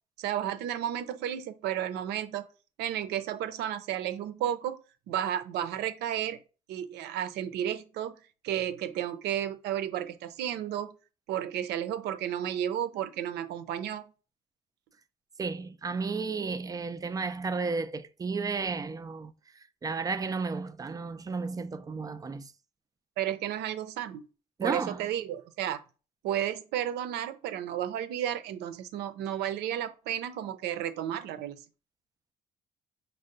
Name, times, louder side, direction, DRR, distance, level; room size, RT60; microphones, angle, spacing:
voice 1, 0.2-2.5 2.8-4.8 5.1-6.4 6.7-8.2 8.4-11.0 11.3-14.0 23.2-24.3 24.6-25.8 26.2-31.6, right 10 dB, 80° right, 0.5 m, -32 dB
voice 2, 15.4-22.5 24.6-25.1, right 4 dB, 20° right, 0.3 m, -33 dB
5.4 x 2.1 x 3.8 m
cardioid pair, 110°, 17 cm